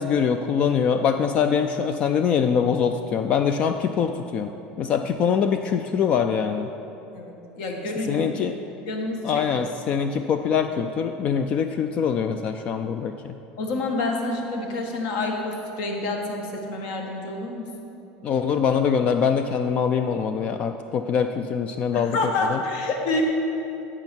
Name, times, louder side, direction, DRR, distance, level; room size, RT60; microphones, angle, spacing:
voice 1, 0.0-4.5 4.8-6.7 8.0-8.5 9.2-13.4 18.2-22.2 22.5-22.6, left 7 dB, 35° left, 7 dB, 0.3 m, -23 dB
voice 2, 7.1-8.3 8.9-9.3 13.6-17.6 21.9-23.2, left 2 dB, 65° left, 2 dB, 1.5 m, -28 dB
11.0 x 7.9 x 4.5 m, 3.0 s
cardioid pair, 160°, 4 cm